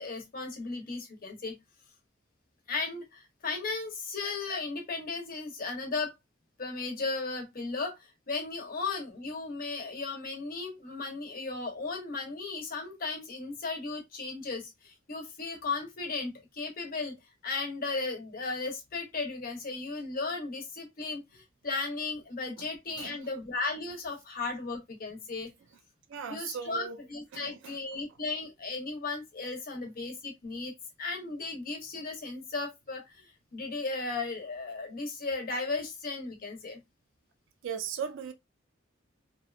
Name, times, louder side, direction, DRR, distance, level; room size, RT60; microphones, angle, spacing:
voice 1, 0.0-1.6 2.7-6.1 6.6-8.0 8.3-17.1 17.4-25.5 26.3-30.7 31.0-36.8, left 3 dB, 45° left, 0.8 m, -35 dB
voice 2, 23.0-23.4 25.7-25.8 26.1-27.0 27.3-28.2 37.6-38.3, right 7 dB, 65° right, 0.4 m, -39 dB
2.8 x 2.1 x 2.3 m
head